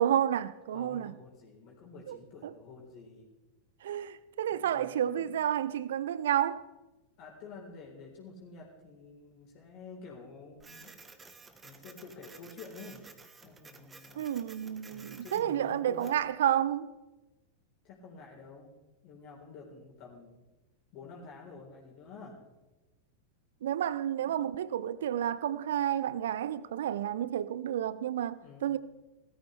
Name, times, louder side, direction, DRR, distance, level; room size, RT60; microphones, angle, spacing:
voice 1, 0.0-1.1 2.1-2.2 3.8-6.6 14.2-16.9 23.6-28.8, right 10 dB, 60° right, 0.6 m, -30 dB
voice 2, 0.7-3.3 4.5-5.3 7.2-10.9 11.6-13.1 13.4-14.3 14.9-16.2 17.8-18.7 19.0-20.5 20.9-22.4 24.3-24.5 28.4-28.8, left 4 dB, 40° left, 3.8 m, -49 dB
Printer, 10.6-16.2, right 4 dB, 15° right, 1.3 m, -53 dB
19.0 x 13.5 x 3.3 m
figure-of-eight pair, 90°, 0 cm